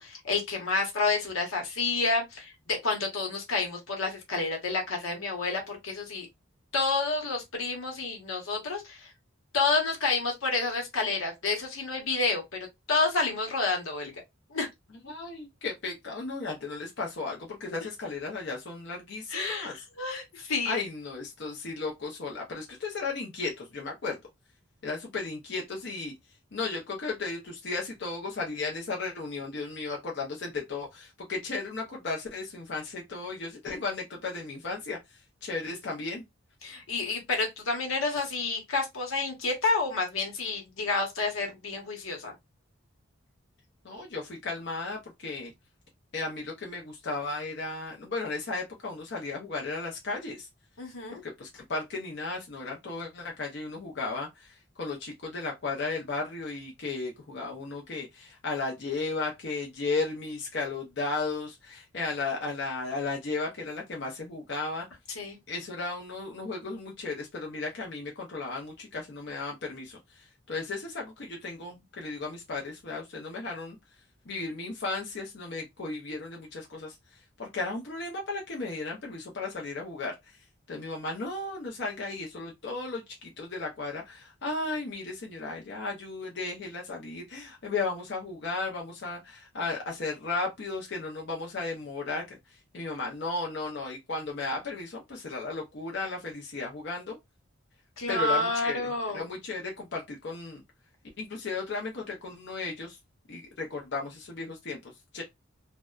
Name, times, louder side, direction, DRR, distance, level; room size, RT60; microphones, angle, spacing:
voice 1, 0.0-6.3 6.7-9.1 9.5-14.1 14.5-14.7 19.3-20.8 36.6-42.3 50.8-51.2 65.2-65.4 98.0-99.3, left 3 dB, 90° left, 1.0 m, -29 dB
voice 2, 15.0-19.8 20.6-24.2 24.8-26.1 26.5-36.2 43.8-45.5 46.1-50.5 51.2-64.9 65.5-73.8 74.3-80.4 80.7-97.2 98.1-100.6 101.2-103.0 103.3-105.2, left 3 dB, 55° left, 0.6 m, -35 dB
2.6 x 2.1 x 2.2 m
head